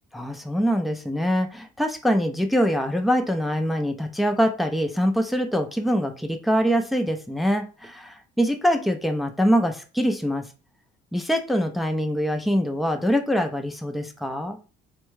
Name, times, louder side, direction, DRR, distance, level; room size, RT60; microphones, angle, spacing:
voice 1, 0.1-10.4 11.1-14.6, equal, ahead, 5 dB, 0.4 m, -24 dB
3.5 x 2.2 x 3.0 m, 0.35 s
cardioid pair, 110°, 17 cm